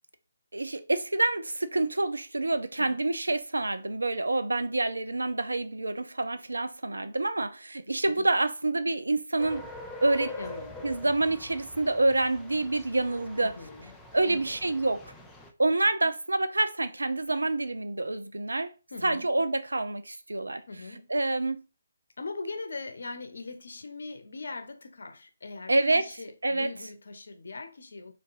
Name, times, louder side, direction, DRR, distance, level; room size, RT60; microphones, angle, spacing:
voice 1, 0.5-9.6 10.0-10.3 10.8-13.5 14.1-15.1 15.6-18.7 19.0-20.6 21.1-21.6 25.7-26.1 26.4-26.7, right 2 dB, 75° right, 0.3 m, -27 dB
sound 1, 9.4-15.5, left 2 dB, 5° left, 0.3 m, -44 dB
voice 2, 10.4-10.9 13.4-13.9 14.3-14.8 18.9-19.3 20.7-21.1 22.2-28.1, left 3 dB, 60° left, 0.5 m, -41 dB
2.4 x 2.3 x 3.0 m
figure-of-eight pair, 140°, 0 cm